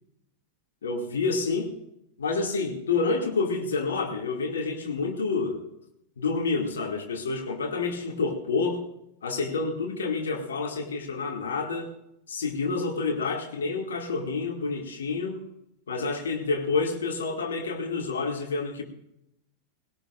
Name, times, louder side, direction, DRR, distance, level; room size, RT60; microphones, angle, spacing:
voice 1, 0.8-1.7 2.2-5.6 6.2-8.8 9.2-11.9 12.3-15.4 15.9-18.8, left 4 dB, 65° left, 3 dB, 2.3 m, -28 dB
20.0 x 18.0 x 2.5 m, 0.81 s
figure-of-eight pair, 90°, 0 cm